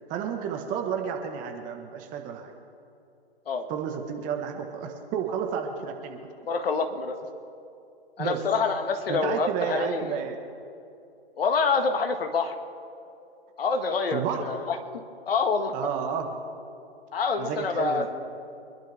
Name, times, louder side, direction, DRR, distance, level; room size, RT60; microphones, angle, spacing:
voice 1, 0.1-2.5 3.7-6.2 8.2-8.4 9.1-10.4 14.1-14.4 15.7-16.3 17.4-18.1, right 8 dB, 25° right, 3 dB, 1.6 m, -31 dB
voice 2, 6.5-7.2 8.2-10.2 11.4-12.5 13.6-15.7 17.1-18.1, left 4 dB, 65° left, 6 dB, 1.7 m, -27 dB
25.0 x 11.5 x 3.6 m, 2.7 s
hypercardioid pair, 130°, 32 cm